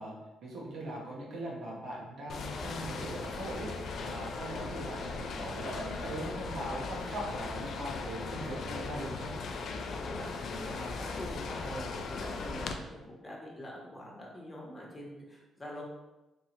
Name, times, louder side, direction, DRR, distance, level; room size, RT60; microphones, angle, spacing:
voice 1, 0.0-9.3 11.6-11.9 12.9-13.1, right 1 dB, 70° right, -3 dB, 1.2 m, -40 dB
sound 1, 2.3-12.7, left 4 dB, 60° left, 0.4 m, -38 dB
voice 2, 9.9-11.7 12.1-15.8, left 1 dB, 20° left, -4 dB, 1.2 m, -44 dB
3.4 x 2.7 x 4.3 m, 1.0 s
cardioid pair, 90°, 0 cm